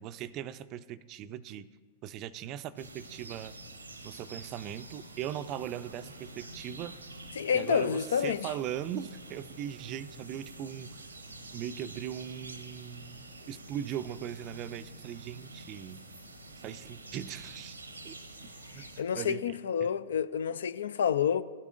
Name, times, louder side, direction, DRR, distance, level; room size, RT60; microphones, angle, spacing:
voice 1, 0.0-1.7 2.0-3.5 4.0-6.9 7.5-11.0 11.5-16.0 16.6-17.8 18.0-18.2 18.7-18.9 19.1-19.9, right 10 dB, 40° right, 0.4 m, -39 dB
sound 1, 2.8-19.0, right 2 dB, 90° right, 0.7 m, -47 dB
voice 2, 7.4-8.5 18.7-21.4, left 8 dB, 70° left, 0.3 m, -29 dB
16.0 x 8.4 x 2.5 m
figure-of-eight pair, 100°, 0 cm